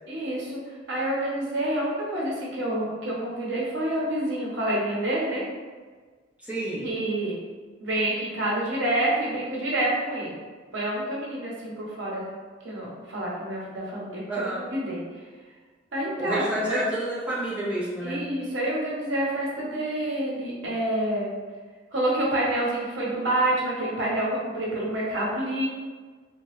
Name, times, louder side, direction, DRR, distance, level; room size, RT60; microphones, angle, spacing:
voice 1, 0.1-5.5 6.8-7.3 7.8-10.4 10.7-12.3 12.6-15.2 15.9-16.8 18.0-21.3 21.9-25.7, right 1 dB, 80° right, -5 dB, 0.9 m, -28 dB
voice 2, 6.4-6.9 14.3-14.6 16.2-18.2, right 1 dB, 5° right, -9 dB, 0.8 m, -29 dB
2.8 x 2.3 x 3.1 m, 1.5 s
head